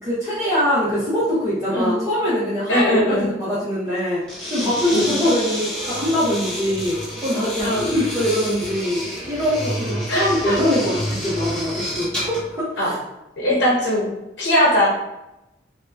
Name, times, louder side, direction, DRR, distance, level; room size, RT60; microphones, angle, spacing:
voice 1, 0.0-4.2 4.5-12.9, equal, 15° right, -11 dB, 0.7 m, -23 dB
voice 2, 2.7-3.3 4.9-5.1 7.6-7.9 10.1-10.6 12.8-12.9 13.4-14.1 14.4-14.9, equal, 70° left, -5 dB, 0.8 m, -19 dB
sound 1, 4.2-12.5, equal, 5° left, 1.0 m, -29 dB
2.7 x 2.2 x 3.3 m, 0.92 s
head